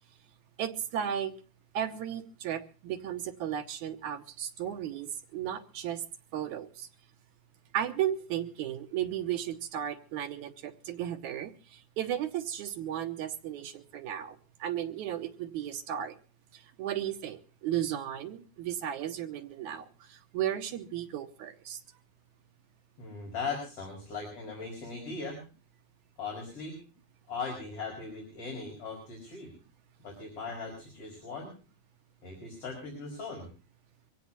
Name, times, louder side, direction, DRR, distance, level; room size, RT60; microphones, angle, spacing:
voice 1, 0.6-1.3 1.7-6.0 6.3-6.9 7.7-16.2 16.5-21.8, right 10 dB, 70° right, 7 dB, 2.1 m, -35 dB
voice 2, 23.0-25.4 26.2-26.8 27.3-29.5 30.0-31.5 32.2-33.5, left 4 dB, 40° left, 0 dB, 6.0 m, -39 dB
24.0 x 16.5 x 2.8 m, 0.37 s
omnidirectional pair, 4.1 m